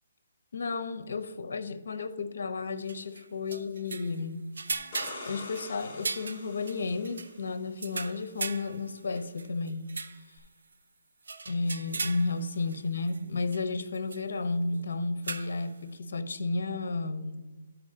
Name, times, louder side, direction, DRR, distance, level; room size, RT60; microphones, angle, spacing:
voice 1, 0.5-4.5 5.3-9.9 11.5-17.5, left 3 dB, 60° left, 0.7 m, -33 dB
sound 1, 2.9-4.2 4.5-7.3 7.8-10.2 10.7-10.8 11.2-12.8 13.1-13.2 13.5-13.6 13.9-14.2 15.2-15.7, right 3 dB, 80° right, 0.5 m, -38 dB
sound 2, 4.7-7.5 10.4-10.5, left 3 dB, 15° left, 0.9 m, -45 dB
12.0 x 4.7 x 3.7 m
hypercardioid pair, 180°, 0 cm